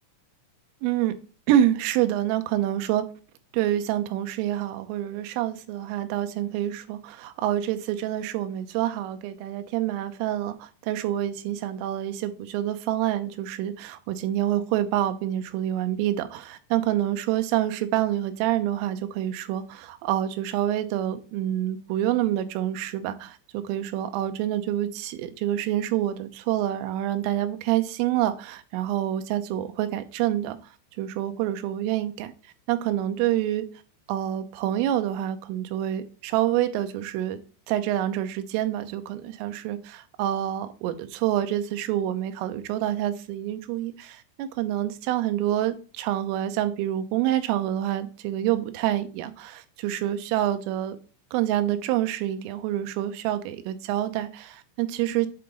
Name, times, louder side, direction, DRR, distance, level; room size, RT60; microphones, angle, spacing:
voice 1, 0.8-1.2 1.5-3.1 3.5-30.6 31.0-32.3 32.7-33.7 34.1-37.4 37.7-51.0 51.3-55.3, right 12 dB, 85° right, 9 dB, 3.3 m, -27 dB
8.1 x 3.8 x 3.8 m, 0.37 s
omnidirectional pair, 5.8 m